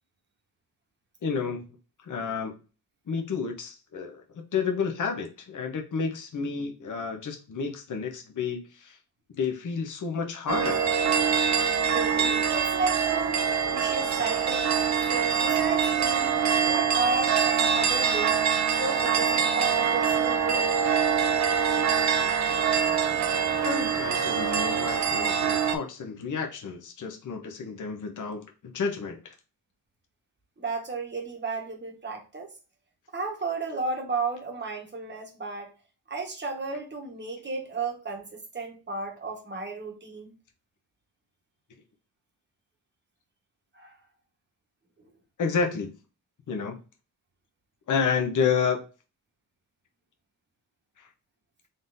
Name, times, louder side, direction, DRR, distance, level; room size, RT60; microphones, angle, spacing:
voice 1, 1.2-1.6 2.0-2.6 3.1-9.0 9.4-10.9 23.2-29.3 45.4-45.9 46.5-46.8 47.9-48.9 51.0-51.1, left 5 dB, 50° left, 0.9 m, -30 dB
sound 1, 10.5-25.8, right 7 dB, 45° right, 0.6 m, -24 dB
voice 2, 11.9-13.4 13.7-14.7 15.0-18.4 18.8-20.7 30.6-32.5 33.1-35.7 36.1-40.4 43.7-44.0 45.0-45.1, right 3 dB, 25° right, 1.3 m, -33 dB
3.9 x 3.8 x 2.6 m
wide cardioid pair, 140°, 40 cm